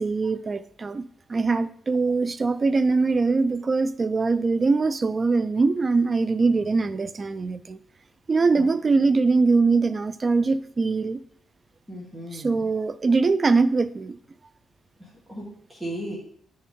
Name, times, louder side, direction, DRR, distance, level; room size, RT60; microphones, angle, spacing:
voice 1, 0.0-7.8 8.3-11.2 12.3-14.2, right 4 dB, 30° right, 0.3 m, -22 dB
voice 2, 11.9-12.7 15.0-16.2, right 1 dB, 10° right, 1.6 m, -36 dB
10.0 x 4.1 x 3.6 m
cardioid pair, 145°, 0 cm